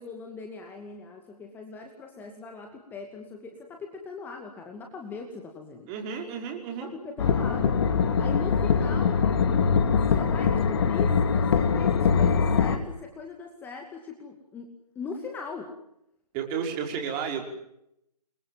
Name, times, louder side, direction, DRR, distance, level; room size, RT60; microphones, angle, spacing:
voice 1, 0.0-5.9 6.8-7.8 8.2-14.7 15.0-15.7, left 4 dB, 10° left, 3 dB, 2.3 m, -40 dB
voice 2, 5.9-6.9 16.3-17.4, right 7 dB, 20° right, 2 dB, 5.5 m, -32 dB
sound 1, 7.2-12.8, left 6 dB, 40° left, 2.5 m, -23 dB
29.0 x 23.0 x 7.6 m, 0.79 s
figure-of-eight pair, 145°, 21 cm